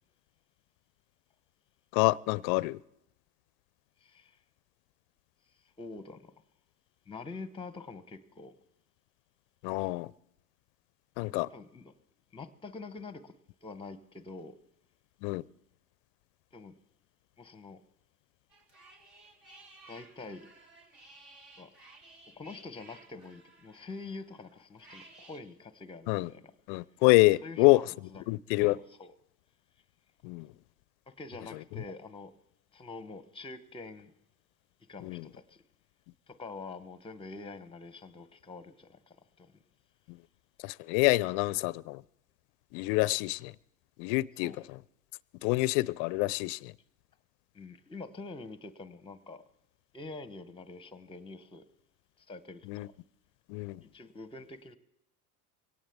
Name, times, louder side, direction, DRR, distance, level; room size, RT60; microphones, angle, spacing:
voice 1, 1.9-2.8 9.6-10.1 11.2-11.5 15.2-15.4 26.1-26.3 26.7-27.8 28.3-28.8 30.2-30.5 35.0-35.3 40.1-40.2 40.6-42.0 42.7-43.5 44.0-44.5 45.4-46.7 52.7-52.9 53.5-53.8, left 22 dB, 55° left, 0.5 m, -27 dB
voice 2, 4.0-4.4 5.8-6.3 7.1-8.5 11.5-11.9 12.3-14.6 16.5-16.8 17.4-17.8 19.9-20.5 21.6-21.7 22.3-26.5 27.4-27.8 28.1-28.2 28.5-29.1 31.1-32.3 32.7-34.1 34.9-35.6 36.3-39.5 44.4-44.6 47.5-49.4 49.9-51.7 52.2-52.9 53.8-54.8, left 3 dB, 10° left, 0.9 m, -46 dB
sound 1, 18.5-25.4, right 2 dB, 55° right, 3.1 m, -56 dB
23.0 x 17.5 x 3.5 m
hypercardioid pair, 75°, 46 cm